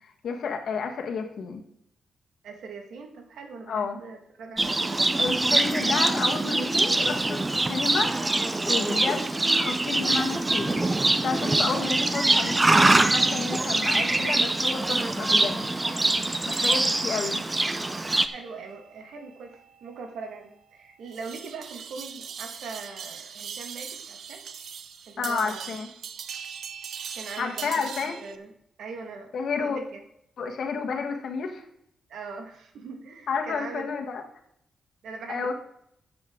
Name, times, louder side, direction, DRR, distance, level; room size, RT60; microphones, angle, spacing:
voice 1, 0.2-1.6 3.7-4.0 5.2-7.4 7.7-8.3 8.7-10.9 11.2-15.7 16.4-17.4 25.2-25.9 27.4-28.2 29.3-29.8 30.4-31.6 33.3-34.2 35.3-35.5, left 5 dB, 65° left, 4 dB, 1.6 m, -31 dB
voice 2, 2.4-5.2 8.7-9.0 18.2-24.4 25.1-25.7 27.1-28.5 28.8-30.0 32.1-33.8 35.0-35.5, right 4 dB, 85° right, 4 dB, 1.8 m, -41 dB
Livestock farm animals working animals, 4.6-18.3, right 2 dB, 20° right, 0.7 m, -24 dB
sound 1, 16.5-28.4, right 7 dB, 70° right, 0.7 m, -41 dB
13.0 x 7.8 x 3.8 m, 0.75 s
cardioid pair, 125°, 0 cm